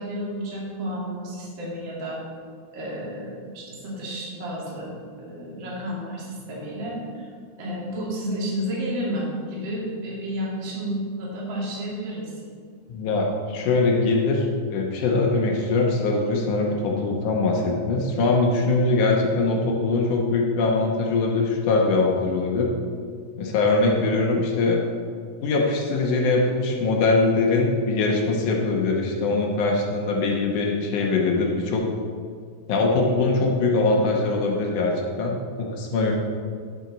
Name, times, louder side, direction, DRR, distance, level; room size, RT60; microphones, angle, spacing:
voice 1, 0.0-2.2 2.7-7.3 7.6-12.3, equal, 35° right, -5 dB, 2.6 m, -31 dB
voice 2, 12.9-14.5 14.7-22.7 23.4-24.8 25.4-31.8 32.7-34.9 35.2-36.1, left 3 dB, 65° left, -1 dB, 2.3 m, -22 dB
12.5 x 7.5 x 4.0 m, 2.1 s
omnidirectional pair, 4.3 m